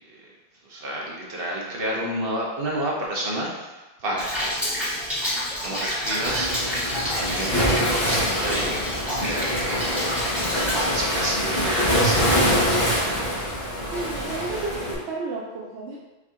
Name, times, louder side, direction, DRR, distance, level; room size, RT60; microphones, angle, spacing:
voice 1, 0.7-3.7 4.0-4.9 5.6-6.6 6.9-8.8 9.0-9.9 10.7-13.3, right 1 dB, 65° right, -3 dB, 1.1 m, -30 dB
Rain, 4.2-10.8, left 1 dB, ahead, 1.3 m, -29 dB
Waves surf, 6.2-14.9, equal, 65° left, 1.4 m, -24 dB
voice 2, 13.9-16.0, right 3 dB, 85° right, -3 dB, 0.9 m, -32 dB
4.7 x 2.7 x 3.6 m, 1.1 s
omnidirectional pair, 1.1 m